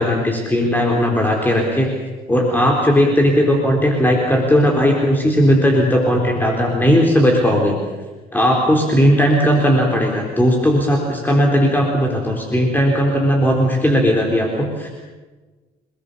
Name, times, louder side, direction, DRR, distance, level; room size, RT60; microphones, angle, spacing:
voice 1, 0.0-1.9 2.3-7.8 8.3-14.9, equal, 10° left, 0 dB, 4.1 m, -16 dB
30.0 x 20.0 x 6.9 m, 1.3 s
cardioid pair, 110°, 17 cm